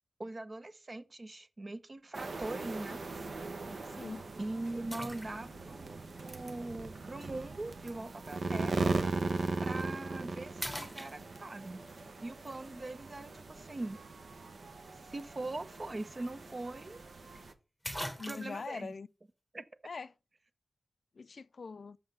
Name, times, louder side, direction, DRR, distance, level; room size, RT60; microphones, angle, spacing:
voice 1, 0.2-3.0 4.4-8.9 9.6-11.8 12.2-14.0 15.1-17.0 18.3-18.9 19.5-19.6, right 2 dB, 45° right, 0.8 m, -41 dB
sound 1, 2.1-17.5, right 3 dB, 70° right, 1.0 m, -39 dB
sound 2, 2.4-2.7 3.4-3.5 4.9-5.7 7.2-7.3 9.5-9.7 10.1-10.3 10.6-11.7 15.8-15.9 16.2-16.3 17.4-17.5 17.8-18.7, equal, ahead, 1.3 m, -42 dB
voice 2, 3.8-4.3 18.2-19.1 19.8-20.1 21.2-22.0, left 4 dB, 70° left, 0.3 m, -43 dB
6.8 x 5.5 x 5.3 m
cardioid pair, 60°, 0 cm